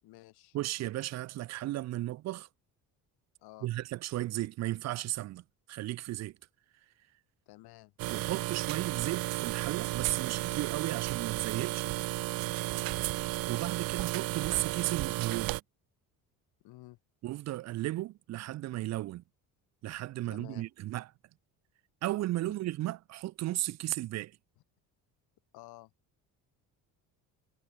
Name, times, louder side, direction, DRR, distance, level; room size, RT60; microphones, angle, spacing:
voice 1, 0.0-0.6 3.4-3.7 7.5-7.9 12.7-13.0 16.6-17.0 20.3-20.7 22.4-22.5 25.5-25.9, left 18 dB, 85° left, 4.2 m, -52 dB
voice 2, 0.5-2.5 3.6-6.4 8.1-11.9 13.5-15.6 17.2-19.2 19.8-21.1 22.0-24.4, right 16 dB, 45° right, 0.6 m, -35 dB
sound 1, 8.0-15.6, right 19 dB, 70° right, 1.1 m, -33 dB
cardioid pair, 180°, 37 cm